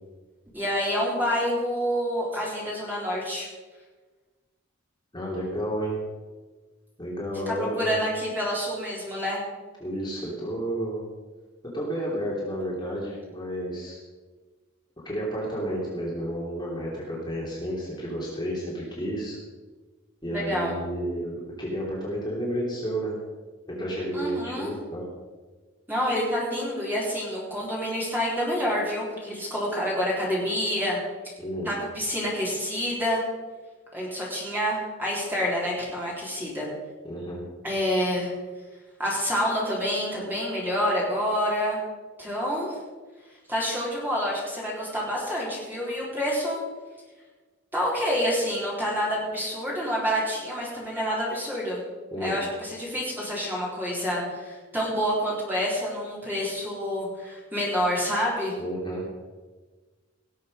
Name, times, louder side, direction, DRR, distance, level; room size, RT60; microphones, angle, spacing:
voice 1, 0.5-3.5 7.5-9.4 20.3-20.8 24.1-24.7 25.9-31.0 31.6-33.2 33.9-36.7 37.6-38.3 39.0-41.8 42.2-42.7 43.5-46.6 47.7-51.8 52.2-58.6, equal, 10° right, -5 dB, 4.0 m, -28 dB
voice 2, 5.1-6.0 7.0-8.0 9.8-11.0 11.7-14.0 15.0-19.4 20.2-23.1 23.7-25.1 31.4-31.7 37.0-37.4 52.1-52.3 58.6-59.1, right 1 dB, 20° left, -5 dB, 3.0 m, -31 dB
18.5 x 7.8 x 5.3 m, 1.3 s
head